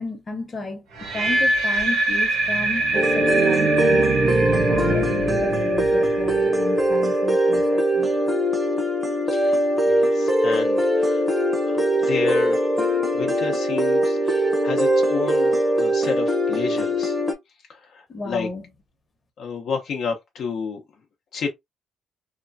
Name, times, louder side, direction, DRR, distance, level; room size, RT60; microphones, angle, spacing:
voice 1, 0.0-4.1 4.7-8.1 18.1-18.6, left 2 dB, 35° left, 0.9 m, -33 dB
sound 1, 0.9-7.0, right 2 dB, 90° right, 1.3 m, -25 dB
sound 2, 2.4-6.9, right 6 dB, 65° right, 0.5 m, -27 dB
sound 3, 2.9-17.3, equal, 10° right, 0.7 m, -21 dB
voice 2, 9.8-11.3 11.6-12.6 13.1-17.2 17.7-18.5 19.4-20.8 21.3-21.5, left 5 dB, 70° left, 0.7 m, -30 dB
2.9 x 2.2 x 2.6 m
cardioid pair, 90°, 0 cm